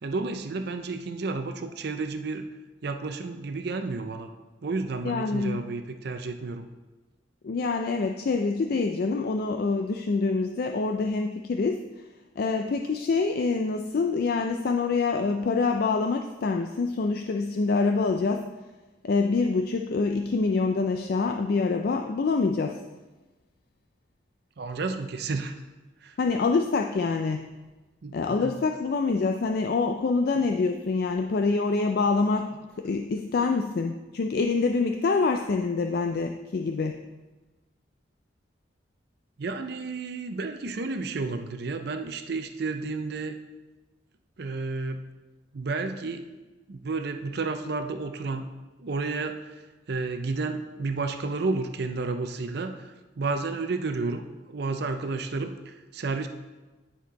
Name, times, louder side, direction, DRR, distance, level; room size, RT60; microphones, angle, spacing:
voice 1, 0.0-2.5 2.8-4.3 4.6-6.7 24.6-25.5 26.0-26.1 28.0-28.5 33.4-33.5 39.4-43.4 44.4-45.0 45.5-46.2 46.7-48.5 48.8-49.5 49.9-56.3, right 3 dB, 55° right, 7 dB, 0.5 m, -31 dB
voice 2, 5.0-5.6 7.4-11.8 12.4-18.5 19.0-22.8 26.2-27.5 28.1-37.0, left 4 dB, 50° left, 4 dB, 0.3 m, -26 dB
10.0 x 4.3 x 4.0 m, 1.2 s
head